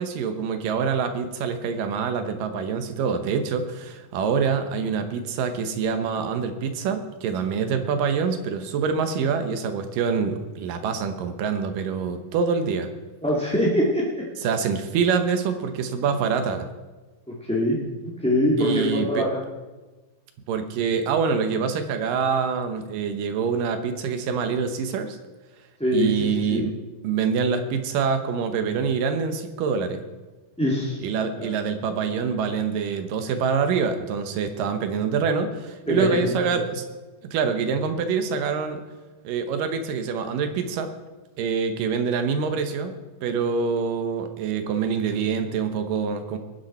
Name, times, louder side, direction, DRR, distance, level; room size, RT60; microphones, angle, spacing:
voice 1, 0.0-12.9 14.4-16.7 18.6-19.2 20.5-25.2 25.9-26.8 27.0-30.0 31.0-36.8 37.2-38.8 39.2-40.9 41.4-43.0 43.2-46.4, right 6 dB, 75° right, 8 dB, 2.6 m, -25 dB
voice 2, 13.2-14.0 17.5-17.8 18.2-19.4 25.8-26.7 30.6-31.0 31.4-31.5 35.9-36.1, equal, 5° left, -5 dB, 0.9 m, -23 dB
21.0 x 9.5 x 4.3 m, 1.2 s
omnidirectional pair, 4.0 m